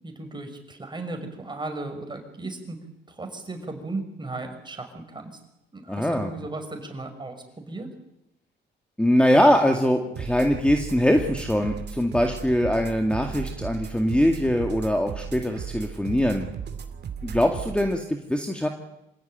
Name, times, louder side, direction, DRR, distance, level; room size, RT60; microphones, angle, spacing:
voice 1, 0.0-2.8 3.1-5.4 5.7-7.9, right 2 dB, 25° right, 6 dB, 5.8 m, -36 dB
voice 2, 5.9-6.3 9.0-16.5 17.2-18.7, equal, 5° left, 4 dB, 2.1 m, -22 dB
sound 1, 10.2-18.0, right 7 dB, 55° right, 2.6 m, -36 dB
26.5 x 16.5 x 9.2 m, 0.87 s
cardioid pair, 90°, 20 cm